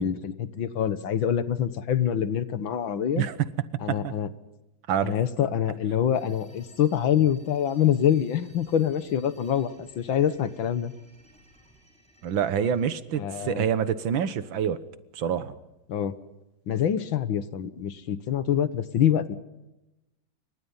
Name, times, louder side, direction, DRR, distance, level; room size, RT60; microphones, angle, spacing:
voice 1, 0.0-3.3 3.8-4.3 5.0-10.9 13.2-13.7 15.9-16.2 16.7-19.4, left 9 dB, 85° left, 13 dB, 2.1 m, -25 dB
voice 2, 3.2-3.5 3.9-4.1 4.9-5.1 12.2-14.8 15.1-15.6, right 8 dB, 85° right, 14 dB, 2.0 m, -26 dB
sound 1, 6.1-13.0, right 1 dB, 5° left, 6.4 m, -58 dB
28.0 x 25.0 x 5.6 m, 0.96 s
omnidirectional pair, 2.1 m